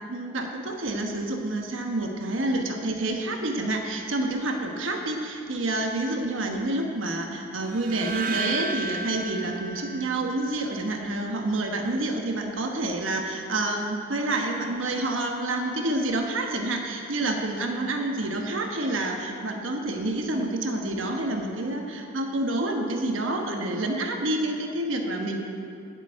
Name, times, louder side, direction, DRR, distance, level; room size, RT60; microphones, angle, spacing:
voice 1, 0.1-25.4, right 2 dB, 80° right, 2 dB, 1.2 m, -28 dB
sound 1, 7.7-10.9, right 3 dB, 45° right, 0.5 m, -34 dB
8.2 x 7.9 x 8.8 m, 2.5 s
head